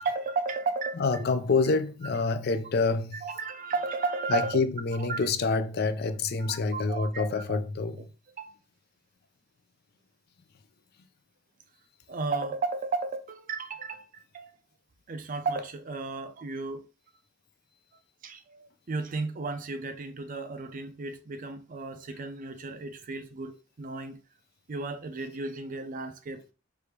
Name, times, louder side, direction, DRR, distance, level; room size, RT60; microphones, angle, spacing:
voice 1, 0.0-1.2 3.2-4.6 5.0-5.2 6.4-7.6 8.4-8.5 12.1-14.5 15.1-16.9 18.2-24.2 24.7-26.4, right 4 dB, 40° right, 0.5 m, -34 dB
voice 2, 1.0-3.3 4.3-8.1, left 4 dB, 50° left, 0.4 m, -27 dB
3.4 x 2.5 x 4.4 m
head